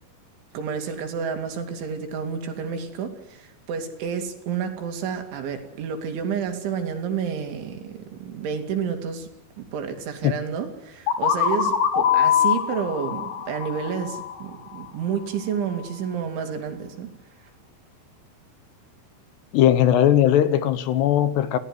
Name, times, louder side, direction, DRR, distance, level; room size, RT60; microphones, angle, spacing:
voice 1, 0.5-9.3 9.6-17.1, right 7 dB, 75° right, 5 dB, 4.9 m, -30 dB
sound 1, 11.1-14.8, left 9 dB, 55° left, 3.8 m, -23 dB
voice 2, 19.5-21.6, left 11 dB, 70° left, 12 dB, 2.9 m, -19 dB
29.5 x 16.5 x 9.7 m, 0.91 s
omnidirectional pair, 5.4 m